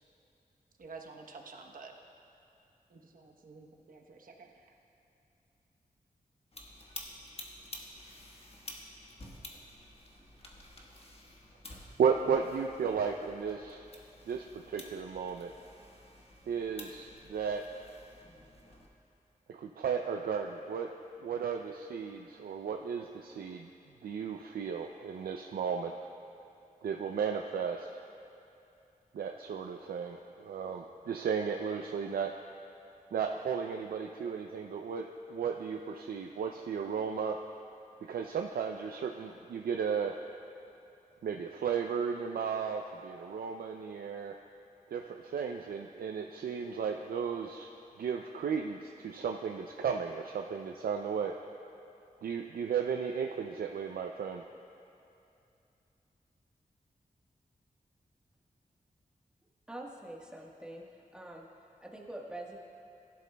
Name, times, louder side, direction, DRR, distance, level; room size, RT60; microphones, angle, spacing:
voice 1, 0.8-1.9 2.9-4.7, right 4 dB, 70° right, 2 dB, 1.0 m, -50 dB
sound 1, 6.5-18.9, left 1 dB, 40° left, 1.3 m, -51 dB
voice 2, 12.0-13.9 14.3-15.5 16.5-17.8 19.5-20.9 21.2-23.7 24.0-25.9 26.8-28.0 29.1-32.3 33.1-37.4 38.0-40.2 41.2-44.4 44.9-47.7 48.0-51.4 52.2-54.4, right 6 dB, 85° right, 3 dB, 0.4 m, -34 dB
voice 3, 59.7-60.9 61.1-61.4 61.8-62.6, right 1 dB, 5° right, -1 dB, 1.3 m, -44 dB
16.0 x 11.5 x 2.2 m, 2.7 s
wide cardioid pair, 85°, 15 cm